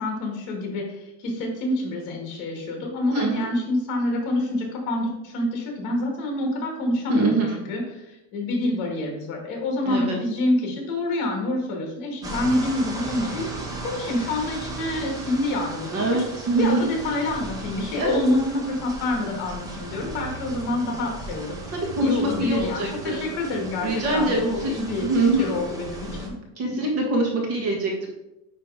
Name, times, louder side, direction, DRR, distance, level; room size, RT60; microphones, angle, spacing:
voice 1, 0.0-7.4 7.7-13.5 13.8-16.2 16.6-21.6 22.0-25.1 25.4-26.3 26.7-26.8, left 1 dB, 45° left, 1 dB, 2.1 m, -27 dB
voice 2, 3.1-3.5 7.1-7.6 9.8-10.2 15.9-16.9 18.0-18.2 21.7-23.3 23.8-24.7 25.0-25.6 26.6-28.1, right 2 dB, 35° right, 0 dB, 1.5 m, -24 dB
sound 1, 12.2-26.3, right 2 dB, 10° right, 0.4 m, -36 dB
9.6 x 3.3 x 4.8 m, 0.92 s
cardioid pair, 175°, 41 cm